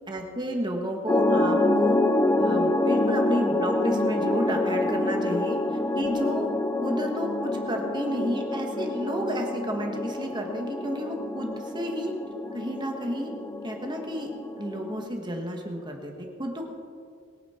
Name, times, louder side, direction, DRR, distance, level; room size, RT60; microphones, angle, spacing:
voice 1, 0.1-2.0 2.4-5.6 5.9-6.5 6.8-12.1 12.5-13.3 13.6-14.3 14.6-16.7, equal, 20° right, 2 dB, 1.6 m, -31 dB
sound 1, 1.1-15.1, left 2 dB, 15° left, 0.5 m, -27 dB
21.5 x 9.3 x 4.4 m, 2.2 s
head